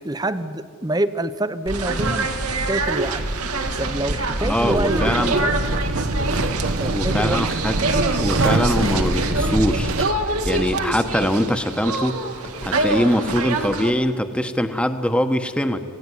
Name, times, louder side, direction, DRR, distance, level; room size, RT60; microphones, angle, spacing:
voice 1, 0.0-3.3 3.8-5.5 6.7-7.4, right 1 dB, 15° right, 12 dB, 0.7 m, -26 dB
sound 1, 1.7-13.9, right 2 dB, 85° right, 2.0 m, -25 dB
voice 2, 4.4-5.4 6.9-7.8 8.2-10.1 10.5-12.2 12.6-15.8, equal, 5° left, 8 dB, 1.1 m, -22 dB
sound 2, 4.6-10.1, right 2 dB, 60° right, 0.9 m, -24 dB
27.5 x 17.0 x 9.9 m, 2.3 s
head